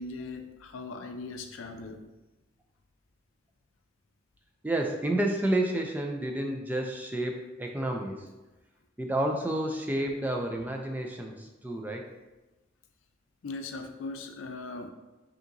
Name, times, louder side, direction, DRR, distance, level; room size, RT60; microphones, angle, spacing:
voice 1, 0.0-2.0 13.4-14.9, left 3 dB, 90° left, 5 dB, 0.4 m, -39 dB
voice 2, 4.6-7.3 7.6-8.2 9.0-12.0, right 1 dB, 10° right, 2 dB, 0.3 m, -30 dB
5.3 x 2.8 x 2.6 m, 1.1 s
head